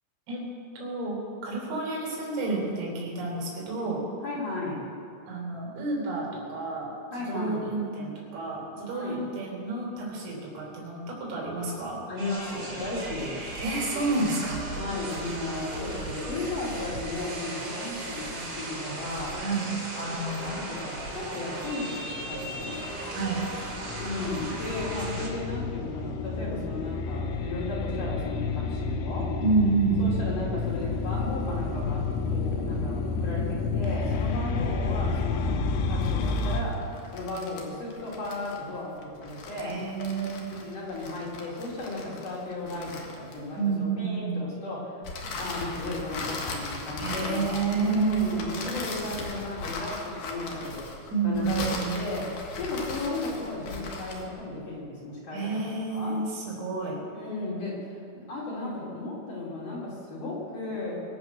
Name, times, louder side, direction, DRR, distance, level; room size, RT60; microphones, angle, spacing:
voice 1, 0.8-4.0 5.3-6.9 7.3-12.0 13.6-14.6 19.4-19.7 23.1-23.5 29.4-30.2 39.6-40.4 43.6-44.5 47.0-48.3 51.1-52.1 55.3-57.1, right 4 dB, 80° right, -3 dB, 6.7 m, -29 dB
voice 2, 4.2-4.9 7.1-7.7 8.9-9.2 12.1-13.4 14.8-19.4 20.0-22.8 24.0-29.3 30.0-32.0 32.3-39.8 40.5-45.0 45.4-50.8 51.2-51.6 52.0-52.2 52.6-55.4 55.9-56.2 57.1-58.0 58.3-60.9, left 2 dB, 45° left, -6 dB, 4.2 m, -35 dB
sound 1, 12.2-25.3, right 2 dB, 35° right, 3.4 m, -37 dB
sound 2, 21.8-36.6, left 4 dB, 80° left, 3.3 m, -30 dB
sound 3, 35.9-43.7 45.0-54.3, left 3 dB, 60° left, 2.3 m, -38 dB
24.5 x 8.5 x 6.2 m, 2.4 s
omnidirectional pair, 5.9 m